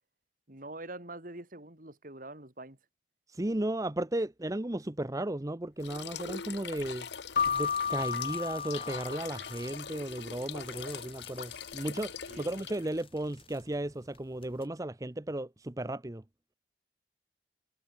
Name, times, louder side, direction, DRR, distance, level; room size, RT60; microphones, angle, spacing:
voice 1, 0.5-2.8 12.3-12.5, right 2 dB, 50° right, 3.5 m, -45 dB
voice 2, 3.3-7.1 7.5-16.2, right 1 dB, 20° right, 0.8 m, -35 dB
sound 1, 5.8-13.0, left 7 dB, 70° left, 1.1 m, -43 dB
sound 2, 7.3-14.7, left 5 dB, 30° left, 7.8 m, -52 dB
Keyboard (musical), 7.4-9.9, left 7 dB, 45° left, 0.6 m, -33 dB
head